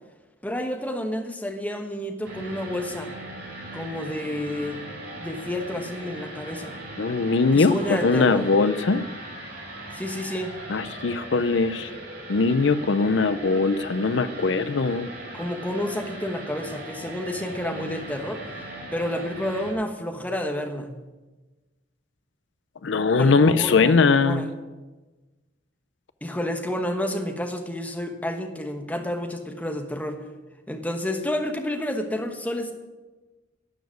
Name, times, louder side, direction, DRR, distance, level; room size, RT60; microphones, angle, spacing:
voice 1, 0.4-3.1 3.7-4.8 5.2-6.8 7.5-8.5 9.9-10.6 15.3-18.5 18.9-21.0 23.2-24.5 26.2-30.2 30.7-32.7, left 1 dB, 10° left, 4 dB, 1.1 m, -30 dB
sound 1, 2.2-19.7, right 1 dB, 50° right, 4.2 m, -39 dB
voice 2, 7.0-9.0 10.7-11.9 12.3-15.1 22.8-24.5, left 4 dB, 70° left, 13 dB, 0.5 m, -21 dB
12.5 x 7.1 x 9.4 m, 1.2 s
head